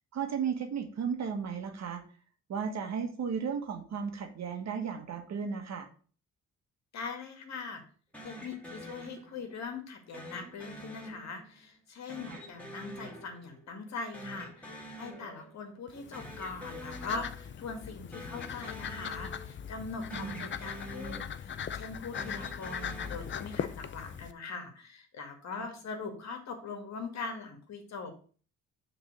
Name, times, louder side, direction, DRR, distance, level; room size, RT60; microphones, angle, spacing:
voice 1, 0.1-2.0 2.5-5.9 12.2-12.4 20.1-20.5 25.6-25.7, right 6 dB, 60° right, 5 dB, 1.6 m, -35 dB
voice 2, 6.9-7.8 8.2-28.1, left 4 dB, 60° left, 4 dB, 2.1 m, -41 dB
sound 1, 8.1-9.7 10.1-11.7 12.1-13.9 14.1-15.7 15.9-17.7 18.1-19.8 20.1-21.7 22.1-23.8, equal, 5° left, 2.2 m, -46 dB
sound 2, 15.9-24.3, left 8 dB, 40° left, 0.6 m, -40 dB
6.7 x 3.9 x 6.4 m, 0.41 s
cardioid pair, 90°, 30 cm